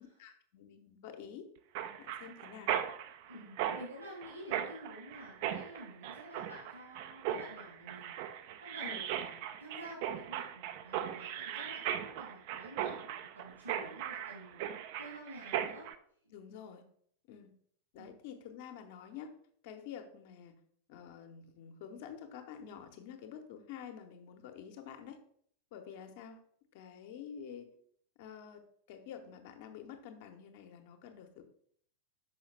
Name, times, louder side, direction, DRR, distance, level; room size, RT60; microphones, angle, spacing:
voice 1, 0.0-1.4 2.0-2.7 3.3-3.5 8.8-9.0 16.3-16.8 17.3-17.5 17.9-19.3 19.6-20.6 20.9-25.2 25.7-26.4 26.7-27.7 28.2-28.6 28.9-31.4, left 8 dB, 50° left, 6 dB, 0.9 m, -48 dB
Mechanisms, 1.8-16.0, right 10 dB, 45° right, 0.4 m, -38 dB
voice 2, 3.3-8.2 8.6-14.7 15.0-16.0 18.0-18.1, right 1 dB, 80° right, -6 dB, 2.7 m, -50 dB
5.6 x 5.5 x 3.3 m, 0.63 s
figure-of-eight pair, 90°, 0 cm